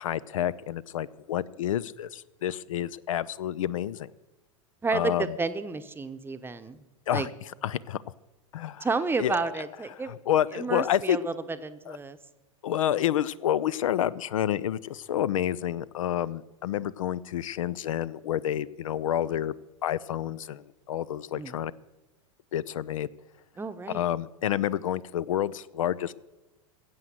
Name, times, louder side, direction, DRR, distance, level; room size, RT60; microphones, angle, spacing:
voice 1, 0.0-4.1 4.9-5.3 7.1-7.3 7.6-8.0 8.5-8.9 9.2-9.4 10.0-11.2 11.9-12.0 12.6-19.5 19.8-21.7 22.5-23.1 23.9-26.1, left 11 dB, 70° left, 19 dB, 0.4 m, -29 dB
voice 2, 4.8-6.8 7.1-7.3 8.8-10.2 10.5-11.3 11.6-12.2 21.3-21.5 23.6-24.0, right 4 dB, 10° right, 9 dB, 0.8 m, -31 dB
15.5 x 7.9 x 7.5 m, 1.1 s
figure-of-eight pair, 90°, 18 cm